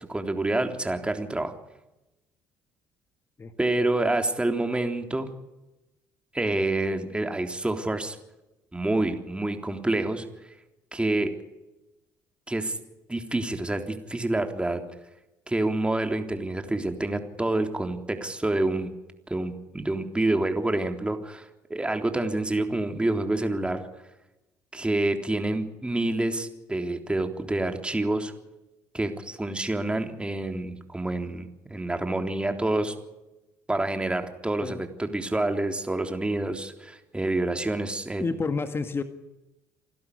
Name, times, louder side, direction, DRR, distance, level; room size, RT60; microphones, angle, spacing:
voice 1, 0.1-1.5 3.6-5.3 6.3-8.2 8.7-10.3 10.9-11.3 12.5-12.8 13.1-14.8 15.5-18.9 19.3-23.8 24.7-28.3 28.9-32.9 33.7-38.2, right 2 dB, 15° right, 5 dB, 3.6 m, -27 dB
voice 2, 38.2-39.0, left 4 dB, 30° left, 9 dB, 1.9 m, -30 dB
28.5 x 12.5 x 10.0 m, 0.98 s
hypercardioid pair, 60°, 8 cm